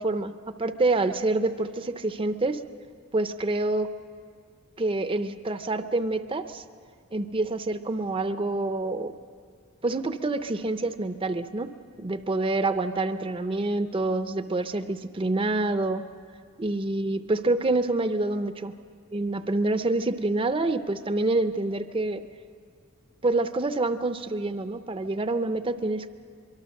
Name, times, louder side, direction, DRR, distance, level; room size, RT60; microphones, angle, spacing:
voice 1, 0.0-2.6 3.1-3.9 4.8-6.6 7.1-9.1 9.8-11.7 12.0-16.1 16.6-18.7 19.1-22.2 23.2-26.1, right 2 dB, 25° right, 10 dB, 0.6 m, -27 dB
23.5 x 23.5 x 6.5 m, 2.1 s
head